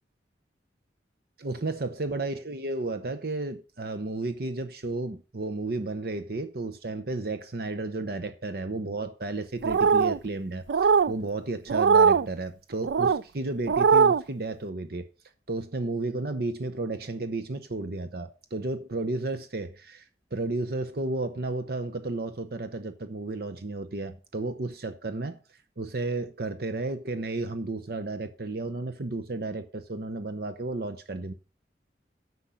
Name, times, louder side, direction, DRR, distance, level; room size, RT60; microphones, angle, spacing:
voice 1, 1.4-15.1 15.5-31.3, right 2 dB, 55° right, 0.8 m, -33 dB
sound 1, 9.6-10.2 10.7-11.1 11.7-12.3 12.8-13.2 13.7-14.2, right 6 dB, 75° right, 0.4 m, -20 dB
10.0 x 7.1 x 5.6 m
head